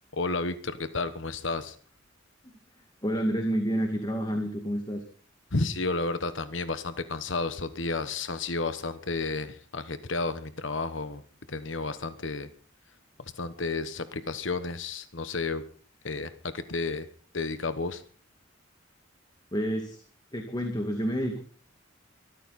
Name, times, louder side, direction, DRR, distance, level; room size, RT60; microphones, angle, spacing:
voice 1, 0.1-1.8 5.5-11.2 11.5-12.5 13.4-15.6 16.0-17.0 17.3-18.0, left 3 dB, 70° left, 11 dB, 1.2 m, -31 dB
voice 2, 3.0-5.0 19.5-20.0 20.3-21.4, equal, 20° left, 4 dB, 2.2 m, -29 dB
23.5 x 14.5 x 4.2 m, 0.43 s
head